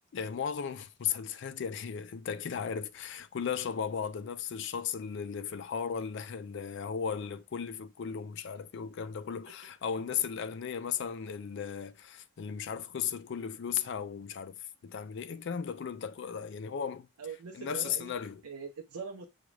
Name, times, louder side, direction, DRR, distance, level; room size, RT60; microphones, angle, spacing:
voice 1, 0.1-17.1 17.5-18.4, left 7 dB, 50° left, 0.3 m, -36 dB
voice 2, 17.2-18.1 18.4-19.3, right 5 dB, 90° right, 0.6 m, -42 dB
6.1 x 2.4 x 3.1 m
head